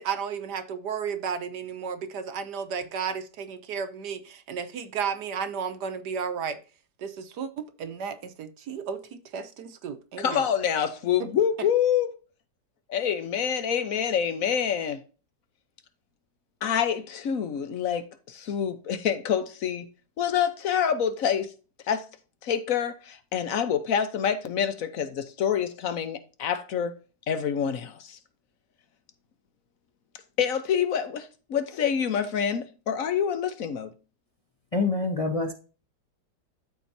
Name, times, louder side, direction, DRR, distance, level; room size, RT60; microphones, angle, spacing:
voice 1, 0.0-6.6 7.0-10.5, right 6 dB, 70° right, 1.5 m, -33 dB
voice 2, 10.2-12.1 12.9-15.0 16.6-19.9 20.2-21.5 21.9-22.0 22.4-26.9 27.3-28.2 30.4-33.9, left 8 dB, 55° left, 1.2 m, -27 dB
voice 3, 34.7-35.5, left 3 dB, 30° left, 0.7 m, -26 dB
13.0 x 4.5 x 2.7 m
omnidirectional pair, 1.9 m